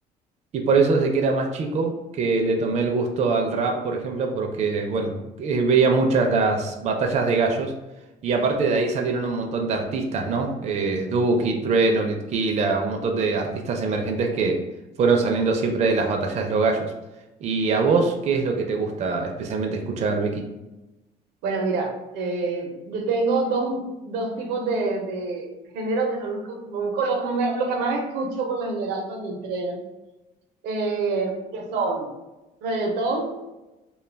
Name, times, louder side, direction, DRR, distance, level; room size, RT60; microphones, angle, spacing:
voice 1, 0.5-5.1 5.4-7.7 8.2-14.6 15.0-16.9 17.4-20.4, right 4 dB, 40° right, 2 dB, 0.4 m, -23 dB
voice 2, 21.4-25.5 25.7-29.8 30.6-32.1 32.6-33.3, right 3 dB, 85° right, 3 dB, 0.6 m, -26 dB
2.2 x 2.2 x 3.2 m, 1.0 s
cardioid pair, 110°, 17 cm